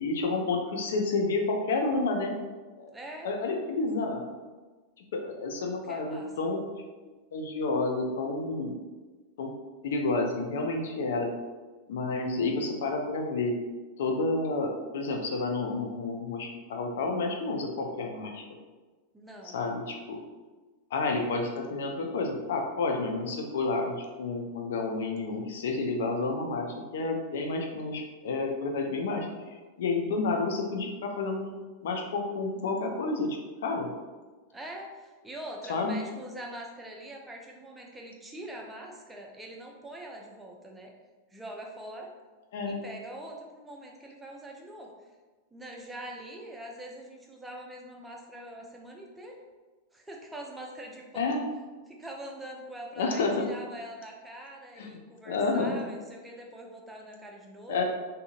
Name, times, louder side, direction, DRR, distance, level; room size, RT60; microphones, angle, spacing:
voice 1, 0.0-2.3 2.8-2.9 3.2-4.2 5.1-6.6 7.3-8.8 9.4-9.5 9.8-11.3 11.9-13.5 14.0-18.4 19.5-20.2 20.9-26.7 26.9-31.5 31.8-33.9 35.7-36.0 42.5-42.8 51.1-51.4 53.0-53.5 54.8-55.0 55.3-55.9 57.7-57.8, left 3 dB, 60° left, 2 dB, 0.5 m, -30 dB
voice 2, 2.9-3.3 5.7-6.3 19.1-19.6 34.5-40.9 41.3-42.1 42.6-44.9 45.5-49.4 49.9-51.4 51.9-57.8, right 1 dB, 10° right, 0 dB, 0.5 m, -43 dB
3.7 x 2.7 x 2.4 m, 1.3 s
figure-of-eight pair, 90°, 0 cm